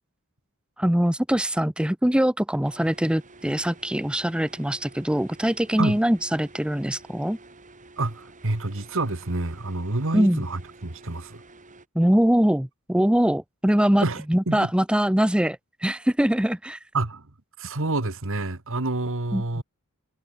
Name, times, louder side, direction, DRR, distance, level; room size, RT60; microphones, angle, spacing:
voice 1, 0.8-7.4 10.1-10.4 11.9-16.8 19.3-19.6, equal, 5° right, 0.7 m, -23 dB
sound 1, 2.6-11.9, right 2 dB, 35° right, 3.5 m, -50 dB
voice 2, 8.0-11.4 14.0-14.7 16.9-17.3 17.6-19.6, right 2 dB, 65° right, 2.0 m, -28 dB
head